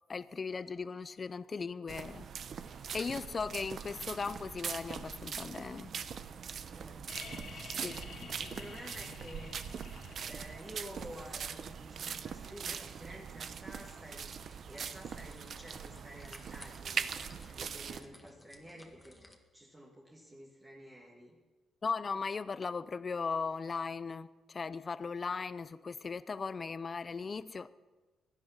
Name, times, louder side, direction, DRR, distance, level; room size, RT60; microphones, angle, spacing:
voice 1, 0.1-2.3 2.9-5.9 7.8-8.0 21.8-27.7, left 5 dB, 35° left, 0.6 m, -37 dB
sound 1, 1.9-18.0, right 7 dB, 55° right, 0.8 m, -42 dB
voice 2, 6.7-8.0 8.4-9.6 10.2-17.1 17.5-19.2 19.5-21.4, equal, 15° right, 1.9 m, -51 dB
sound 2, 7.1-10.8 12.6-12.7, left 5 dB, 70° left, 2.2 m, -49 dB
sound 3, 13.8-19.4, left 1 dB, 10° left, 1.7 m, -58 dB
16.5 x 11.0 x 5.8 m
cardioid pair, 90°, 0 cm